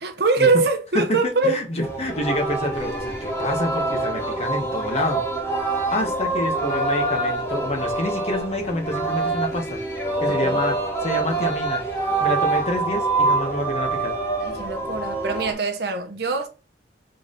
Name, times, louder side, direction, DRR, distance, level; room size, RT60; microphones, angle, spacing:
voice 1, 0.0-1.6 10.3-10.6 14.4-16.5, right 3 dB, 65° right, 0.9 m, -23 dB
voice 2, 1.1-5.2 5.9-9.8 10.2-11.8 12.2-14.2, left 1 dB, 35° left, 1.2 m, -27 dB
Singing, 1.8-15.5, right 3 dB, 15° left, 1.7 m, -25 dB
3.9 x 3.5 x 3.9 m
head